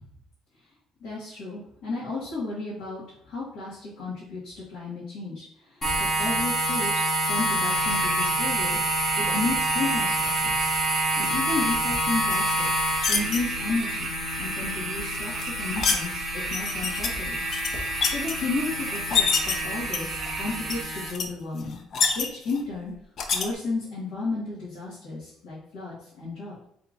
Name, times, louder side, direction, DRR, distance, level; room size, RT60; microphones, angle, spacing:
voice 1, 1.0-8.8 9.2-10.7 11.2-12.7 13.1-17.4 18.0-21.8 22.1-22.9 23.3-26.6, left 3 dB, 80° left, -8 dB, 1.7 m, -33 dB
sound 1, 5.8-21.1, right 1 dB, 25° left, 1.4 m, -27 dB
sound 2, 7.7-20.8, right 5 dB, 50° right, 0.7 m, -36 dB
sound 3, 12.3-13.4 15.1-16.0 16.5-17.1 17.5-18.3 18.9-19.5 19.9-20.3 20.7-20.8 21.1-21.3 21.6-22.6 23.2-23.5, left 5 dB, 50° left, 0.5 m, -26 dB
4.9 x 3.5 x 2.6 m, 0.69 s
cardioid pair, 135°, 0 cm